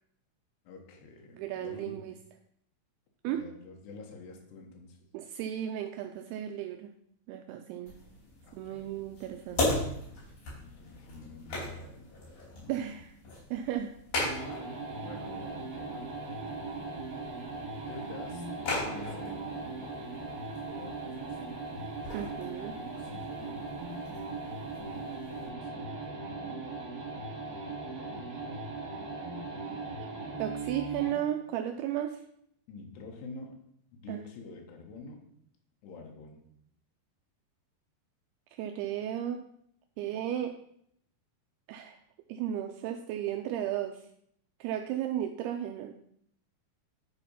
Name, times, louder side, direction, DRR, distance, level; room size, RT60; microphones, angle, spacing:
voice 1, 0.7-2.1 3.3-5.0 8.4-9.1 10.6-12.1 12.5-13.0 15.0-16.1 17.9-21.6 22.6-23.7 24.1-27.5 27.8-28.3 32.7-33.5 33.9-35.2 35.8-36.4, left 3 dB, 80° left, 1 dB, 3.5 m, -49 dB
voice 2, 1.4-2.1 3.2-3.4 5.1-6.9 7.3-7.9 8.5-9.6 12.7-13.1 13.5-13.9 22.1-22.7 30.0-30.1 30.4-32.2 34.1-34.2 38.6-39.4 40.0-40.5 41.7-42.0 42.3-44.0 44.6-45.9, right 11 dB, 85° right, 6 dB, 2.5 m, -34 dB
sound 1, 7.9-25.5, left 2 dB, 55° left, 5.5 m, -39 dB
sound 2, 14.2-31.2, right 3 dB, 55° right, 3.6 m, -39 dB
11.0 x 4.2 x 5.6 m, 0.70 s
omnidirectional pair, 4.8 m